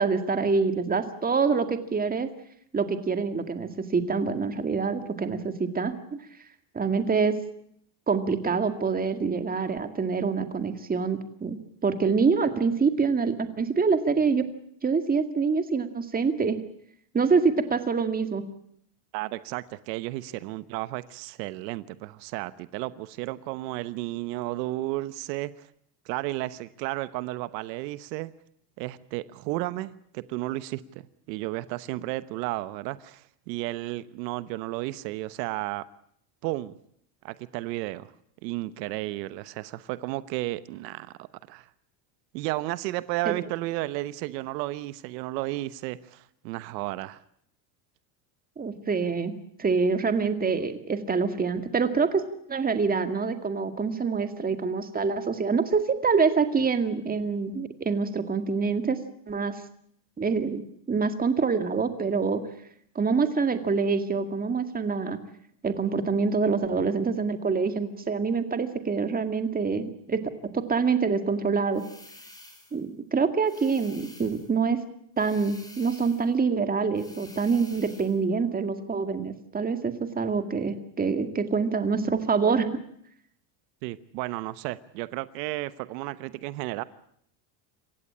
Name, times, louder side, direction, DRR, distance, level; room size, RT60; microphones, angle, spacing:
voice 1, 0.0-2.3 2.7-5.9 6.7-7.4 8.1-14.5 14.8-16.6 17.1-18.5 43.3-43.4 48.6-52.2 52.5-59.0 59.3-59.6 60.2-62.4 63.0-65.2 65.6-70.2 70.5-71.8 72.7-74.8 75.2-82.8, right 5 dB, 20° right, 8 dB, 2.1 m, -26 dB
voice 2, 19.1-25.7 26.0-28.3 28.8-35.8 36.4-36.8 37.2-38.1 38.4-41.1 41.5-41.7 42.3-47.2 83.8-86.8, right 18 dB, 85° right, 15 dB, 1.1 m, -33 dB
sound 1, 71.7-72.8 73.4-74.6 75.2-76.3 76.9-78.2, left 1 dB, 10° left, 4.3 m, -50 dB
27.5 x 15.5 x 8.6 m, 0.68 s
cardioid pair, 135°, 49 cm